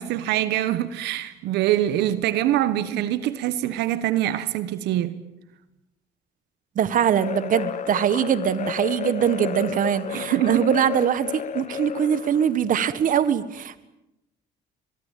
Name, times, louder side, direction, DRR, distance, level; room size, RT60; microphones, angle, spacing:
voice 1, 0.0-5.2 10.1-10.6 11.7-11.8, right 13 dB, 80° right, 1.4 m, -24 dB
voice 2, 6.7-13.9, right 9 dB, 50° right, 1.6 m, -22 dB
sound 1, 7.1-12.6, left 9 dB, 45° left, 1.5 m, -32 dB
23.0 x 23.0 x 9.2 m
cardioid pair, 110°, 17 cm